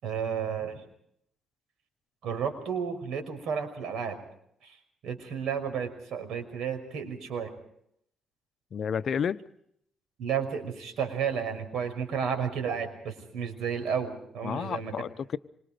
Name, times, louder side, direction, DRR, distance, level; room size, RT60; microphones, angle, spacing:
voice 1, 0.0-0.8 2.2-4.2 4.6-4.8 5.0-7.5 10.2-14.9, right 7 dB, 80° right, 5.7 m, -32 dB
voice 2, 8.7-9.4 14.4-15.4, left 7 dB, 55° left, 0.9 m, -31 dB
26.5 x 24.0 x 5.1 m
cardioid pair, 100°, 0 cm